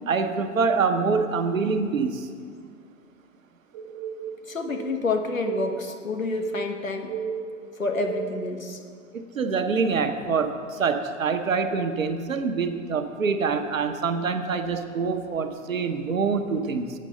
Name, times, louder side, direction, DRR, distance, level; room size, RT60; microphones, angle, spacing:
voice 1, 0.1-2.3 9.1-16.9, right 5 dB, 85° right, 7 dB, 0.7 m, -25 dB
sound 1, 3.7-8.6, right 7 dB, 30° right, 0.7 m, -34 dB
voice 2, 4.5-7.1 7.8-8.8, left 3 dB, 90° left, 3 dB, 0.9 m, -28 dB
7.5 x 5.2 x 6.5 m, 2.2 s
figure-of-eight pair, 100°, 39 cm